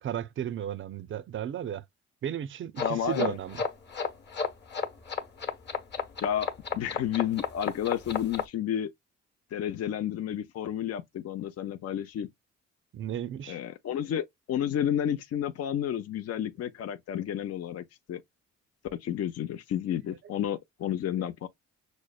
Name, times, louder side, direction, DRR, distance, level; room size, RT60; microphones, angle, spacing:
voice 1, 0.0-1.8 2.2-3.6 12.9-13.6, right 10 dB, 40° right, 0.4 m, -34 dB
voice 2, 2.8-3.4 6.2-6.5 6.7-8.9 9.5-12.3 13.5-17.8 18.1-18.2 19.0-21.5, left 10 dB, 55° left, 0.6 m, -31 dB
sound 1, 2.8-8.4, left 6 dB, 35° left, 1.0 m, -32 dB
6.2 x 2.1 x 2.2 m
cardioid pair, 90°, 30 cm